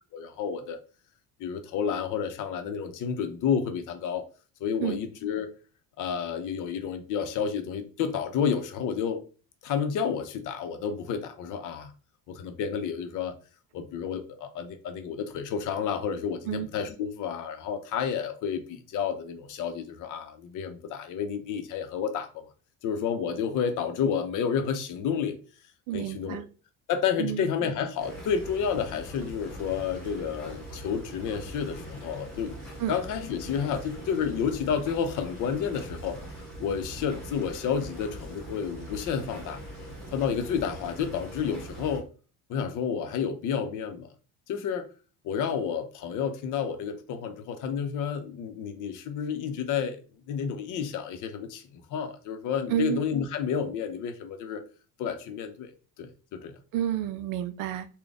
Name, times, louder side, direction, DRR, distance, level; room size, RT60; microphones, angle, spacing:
voice 1, 0.1-0.8 1.4-4.3 4.6-5.5 6.0-9.2 9.6-11.9 12.3-13.3 13.7-22.3 22.8-25.4 25.9-26.4 26.9-32.5 32.9-36.2 36.6-39.6 40.1-42.1 42.5-44.1 44.5-44.9 45.2-50.0 50.3-54.6 55.0-55.7 56.0-56.5, left 7 dB, 60° left, 0.7 m, -30 dB
voice 2, 25.9-26.5 27.2-27.5 32.8-32.9 52.7-53.0 56.7-57.9, right 11 dB, 65° right, 0.5 m, -30 dB
sound 1, 28.0-42.0, right 1 dB, ahead, 1.5 m, -42 dB
3.9 x 2.2 x 3.5 m
cardioid pair, 140°, 35 cm